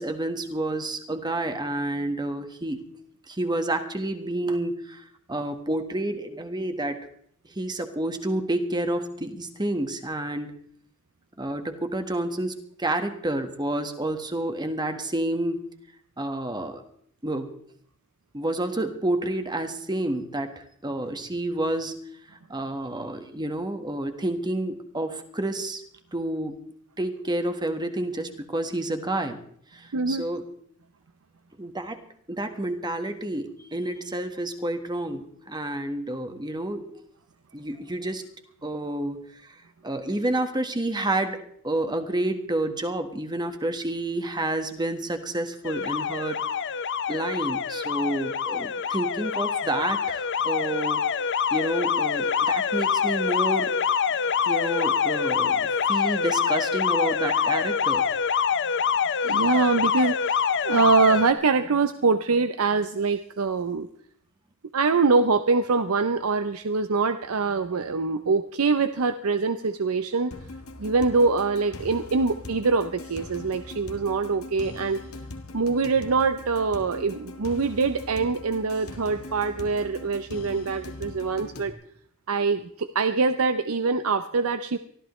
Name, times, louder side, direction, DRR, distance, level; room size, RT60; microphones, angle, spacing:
voice 1, 0.0-2.8 3.3-7.0 7.5-10.5 11.4-15.7 16.2-16.8 17.2-17.5 18.3-22.0 22.3-25.8 26.1-26.6 27.0-29.4 29.7-30.4 31.6-36.9 37.5-38.2 38.6-39.6 39.8-46.4 47.1-51.0 51.5-53.8 54.5-58.5, right 1 dB, 20° right, 7 dB, 1.4 m, -29 dB
voice 2, 29.9-30.3 59.2-63.9 64.7-70.3 70.8-75.0 75.5-81.7 82.3-84.8, right 4 dB, 90° right, 10 dB, 0.6 m, -24 dB
Alarm, 45.6-61.3, left 7 dB, 60° left, 0.7 m, -25 dB
sound 1, 70.3-81.7, left 2 dB, 90° left, 1.5 m, -41 dB
24.0 x 14.0 x 3.2 m, 0.64 s
head